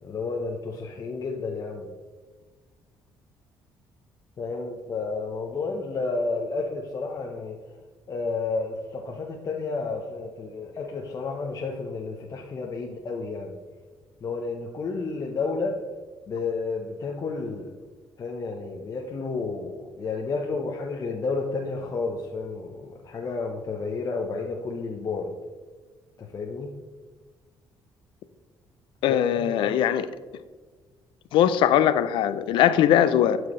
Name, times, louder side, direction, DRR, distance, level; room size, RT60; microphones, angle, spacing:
voice 1, 0.0-1.9 4.4-7.6 8.1-13.5 14.2-15.8 16.3-17.7 18.2-25.3 26.2-26.7 29.1-29.8, left 4 dB, 45° left, 0.9 m, -31 dB
voice 2, 29.0-30.1 31.3-33.4, left 10 dB, 80° left, 0.5 m, -20 dB
12.5 x 4.8 x 3.1 m
cardioid pair, 90°, 8 cm